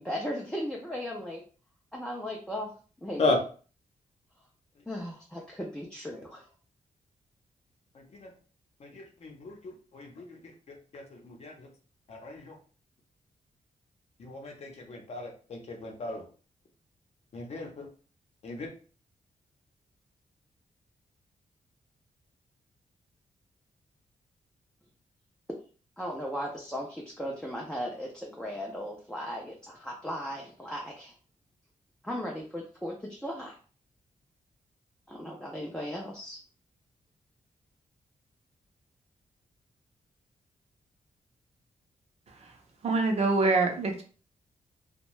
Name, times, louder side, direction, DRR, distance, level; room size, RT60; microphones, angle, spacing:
voice 1, 0.0-1.4 1.9-2.7 3.0-3.4 4.9-6.5 25.5-25.6 26.0-31.1 32.0-33.5 35.1-36.4, equal, 5° left, -2 dB, 0.4 m, -37 dB
voice 2, 8.8-9.6 9.9-10.2 10.9-11.5 12.1-12.5 14.2-16.2 17.3-17.9 18.4-18.7, left 2 dB, 50° left, 1 dB, 0.6 m, -34 dB
voice 3, 42.8-44.0, right 3 dB, 50° right, 3 dB, 0.5 m, -25 dB
2.6 x 2.1 x 3.1 m, 0.39 s
wide cardioid pair, 175°, 14 cm